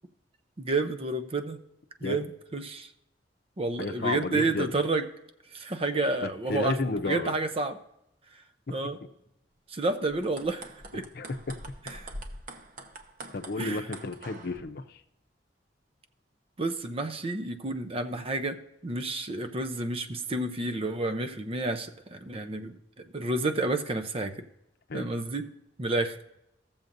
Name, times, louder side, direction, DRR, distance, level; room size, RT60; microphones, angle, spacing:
voice 1, 0.6-1.6 2.0-2.9 3.6-5.1 5.5-6.8 7.0-7.8 8.7-9.0 9.7-11.0 12.0-12.1 13.6-13.8 16.6-24.3 24.9-25.5 25.8-26.2, right 2 dB, 30° right, 8 dB, 0.6 m, -30 dB
voice 2, 3.8-4.7 5.9-7.3 10.9-11.6 13.3-15.0 24.9-25.1, left 3 dB, 60° left, 8 dB, 0.7 m, -32 dB
sound 1, 10.1-14.6, right 1 dB, 50° right, 1.0 m, -44 dB
15.5 x 7.2 x 2.6 m, 0.83 s
head